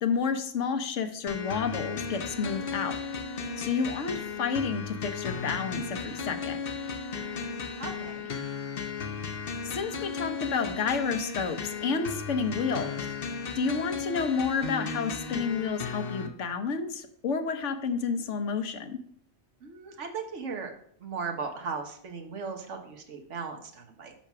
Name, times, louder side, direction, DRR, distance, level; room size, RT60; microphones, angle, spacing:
voice 1, 0.0-2.9 3.6-6.6 9.7-12.9 13.5-19.0, left 5 dB, 75° left, 7 dB, 1.2 m, -30 dB
sound 1, 1.3-16.3, left 5 dB, 55° left, 1.0 m, -35 dB
voice 2, 7.8-8.3 19.6-20.7 21.0-24.1, right 5 dB, 75° right, 3 dB, 1.4 m, -37 dB
5.8 x 5.8 x 5.9 m, 0.64 s
omnidirectional pair, 1.3 m